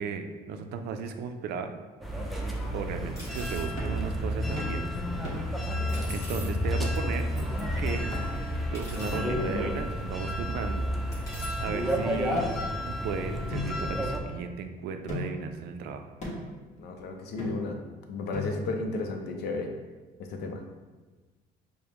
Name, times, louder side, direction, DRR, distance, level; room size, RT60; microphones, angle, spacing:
voice 1, 0.0-1.7 2.7-5.8 6.1-7.3 7.8-8.1 8.7-11.2 11.6-12.4 12.8-16.1, right 5 dB, 75° right, 6 dB, 0.4 m, -36 dB
sound 1, 2.0-14.2, equal, ahead, 0.5 m, -31 dB
sound 2, 2.4-2.5 3.2-3.7 5.9-6.5 7.5-7.6 8.7-9.2 10.1-10.2 11.1-11.6, equal, 15° left, 1.2 m, -44 dB
sound 3, 3.8-4.0 4.6-4.8 5.2-5.6 6.1-6.2 6.6-6.8 7.4-7.6 8.1-8.5 9.1-9.6 10.2-10.9 11.7-11.8 12.3-13.0 13.5-14.5 15.1-15.5 16.2-16.6 17.4-17.8 18.3-18.8, left 1 dB, 45° left, 1.1 m, -39 dB
voice 2, 16.8-17.8 18.1-19.7 20.3-20.6, left 3 dB, 75° left, 3 dB, 0.5 m, -33 dB
4.9 x 2.1 x 2.9 m, 1.3 s
cardioid pair, 110°, 17 cm